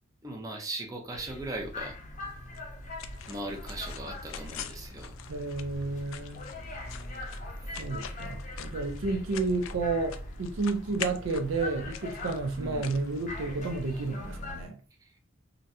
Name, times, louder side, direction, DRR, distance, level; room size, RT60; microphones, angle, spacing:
voice 1, 0.2-2.0 3.3-5.1 6.5-6.7 7.6-7.7 12.6-12.9 15.0-15.1, right 2 dB, 15° right, 0.5 m, -39 dB
sound 1, 1.1-14.7, left 1 dB, 35° left, 0.6 m, -41 dB
sound 2, 2.5-13.9, left 9 dB, 70° left, 0.3 m, -45 dB
voice 2, 5.3-6.5 7.8-14.8, right 3 dB, 65° right, 0.5 m, -31 dB
3.9 x 2.1 x 2.7 m
head